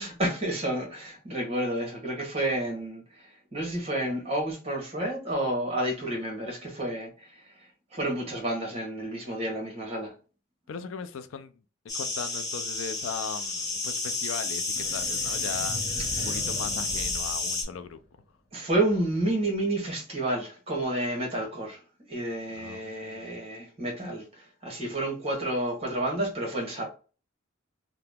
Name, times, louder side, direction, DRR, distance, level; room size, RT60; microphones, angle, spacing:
voice 1, 0.0-7.5 7.9-10.1 16.1-16.3 18.5-21.8 22.1-26.9, right 1 dB, 30° right, 1.1 m, -30 dB
voice 2, 10.7-11.5 11.9-18.0 22.5-23.4, left 6 dB, 80° left, 0.4 m, -38 dB
sound 1, 11.9-17.6, left 3 dB, 20° left, 1.1 m, -31 dB
sound 2, 14.8-18.2, equal, 50° left, 0.8 m, -40 dB
2.8 x 2.1 x 3.4 m
head